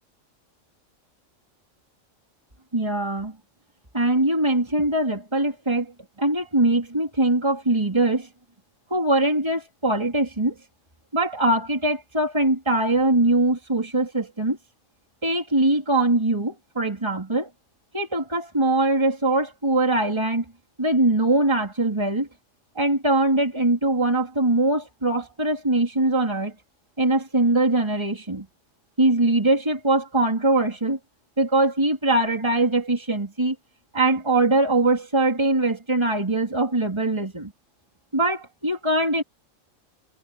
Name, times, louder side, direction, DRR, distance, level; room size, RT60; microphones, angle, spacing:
voice 1, 2.7-3.3 3.9-5.9 6.2-8.3 8.9-10.5 11.1-14.6 15.2-17.5 17.9-20.4 20.8-22.3 22.8-26.5 27.0-28.5 29.0-31.0 31.4-33.6 33.9-37.5 38.1-39.2, right 2 dB, 20° right, 3.7 m, -22 dB
omnidirectional pair, 1.3 m